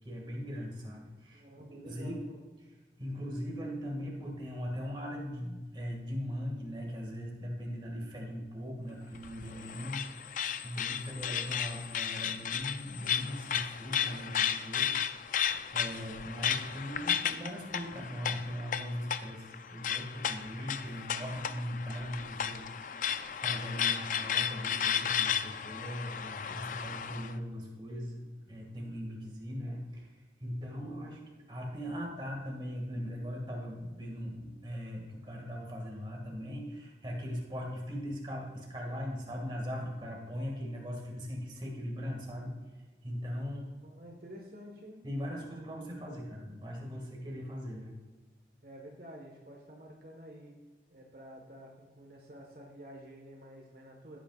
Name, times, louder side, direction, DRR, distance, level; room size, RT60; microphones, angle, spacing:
voice 1, 0.0-1.4 1.7-2.4 3.0-14.9 15.3-23.0 23.3-31.2 31.5-42.5 43.0-43.7 45.0-47.9, equal, 25° right, -1 dB, 2.1 m, -39 dB
voice 2, 1.3-2.4 43.5-45.0 48.6-50.6 50.9-54.2, equal, 55° right, 0 dB, 1.5 m, -50 dB
sound 1, 9.1-27.3, left 8 dB, 45° left, 0.4 m, -34 dB
16.0 x 9.1 x 2.5 m, 1.3 s
head